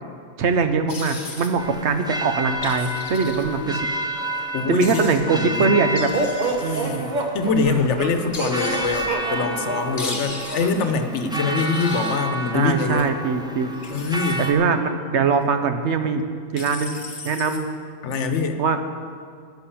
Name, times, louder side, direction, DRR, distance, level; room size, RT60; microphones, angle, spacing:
voice 1, 0.4-3.8 4.7-6.1 6.6-7.1 11.4-11.7 12.5-13.7 14.4-16.3 16.5-17.0 17.2-17.7 18.6-18.8, right 5 dB, 75° right, 8 dB, 1.1 m, -22 dB
sound 1, 0.9-1.5 2.6-3.4 4.8-5.2 6.0-6.6 8.3-9.1 10.0-10.7 11.6-12.2 13.7-14.5 16.6-17.6, left 3 dB, 45° left, 1.2 m, -35 dB
sound 2, 1.6-14.5, right 1 dB, 5° right, 0.4 m, -31 dB
voice 2, 4.5-5.7 6.6-7.0 7.3-13.1 13.9-14.4 18.0-18.6, left 4 dB, 90° left, 8 dB, 1.1 m, -24 dB
sound 3, 6.1-11.0, right 2 dB, 45° right, 1.1 m, -28 dB
11.0 x 5.9 x 8.6 m, 2.1 s
omnidirectional pair, 1.2 m